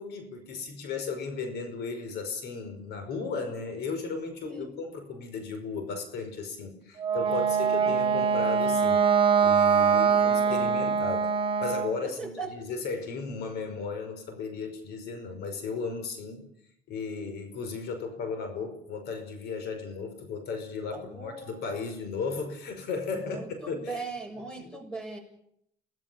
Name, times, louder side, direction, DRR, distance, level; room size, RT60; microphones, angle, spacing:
voice 1, 0.0-9.1 9.4-11.3 11.6-16.5 16.9-24.0 24.6-24.7, left 4 dB, 75° left, 8 dB, 5.3 m, -35 dB
voice 2, 4.4-4.7 7.2-8.3 9.9-10.9 12.2-12.5 20.9-21.6 23.1-25.2, right 3 dB, 5° left, 6 dB, 7.0 m, -40 dB
Wind instrument woodwind instrument, 7.0-12.0, right 6 dB, 30° right, 1.9 m, -23 dB
30.0 x 18.5 x 7.0 m, 0.73 s
cardioid pair, 110°, 17 cm